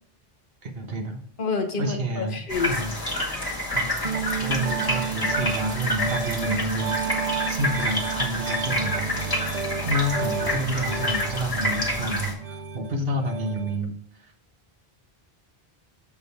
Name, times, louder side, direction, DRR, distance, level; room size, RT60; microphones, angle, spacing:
voice 1, 0.6-1.2 1.8-3.0 3.7-3.9 4.4-7.2 7.5-9.4 9.8-13.9, right 1 dB, 65° right, 4 dB, 1.3 m, -29 dB
voice 2, 1.4-2.8, left 5 dB, 60° left, 6 dB, 1.1 m, -28 dB
sound 1, 2.5-12.3, left 1 dB, 20° left, 1.6 m, -28 dB
Piano, 4.0-13.7, right 7 dB, 50° right, 0.6 m, -31 dB
7.0 x 5.1 x 4.1 m, 0.65 s
omnidirectional pair, 1.0 m